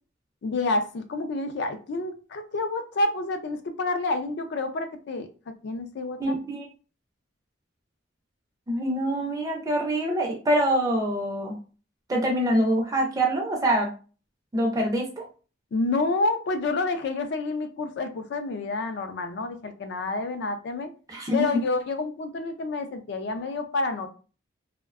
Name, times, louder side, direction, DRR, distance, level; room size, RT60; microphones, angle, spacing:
voice 1, 0.4-5.3 5.6-6.3 15.7-20.9 21.3-24.1, left 2 dB, 55° left, 8 dB, 0.3 m, -28 dB
voice 2, 6.2-6.7 8.7-11.6 12.1-13.9 14.5-15.2 21.1-21.4, right 1 dB, 20° right, 0 dB, 0.4 m, -25 dB
2.5 x 2.1 x 2.3 m, 0.36 s
head